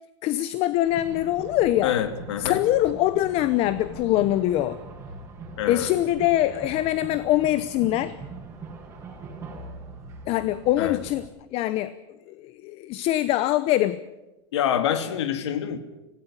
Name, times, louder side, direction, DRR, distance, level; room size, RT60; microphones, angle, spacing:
voice 1, 0.2-1.9 2.4-4.8 5.6-8.1 10.3-11.2 11.5-11.9 12.4-14.0, left 14 dB, 45° left, 0.8 m, -23 dB
sound 1, 0.8-11.3, right 3 dB, 20° right, 7.6 m, -41 dB
voice 2, 1.8-2.7 5.6-6.0 10.8-11.0 14.5-15.8, left 10 dB, 90° left, 2.2 m, -26 dB
18.5 x 17.0 x 9.8 m
supercardioid pair, 135°, 14 cm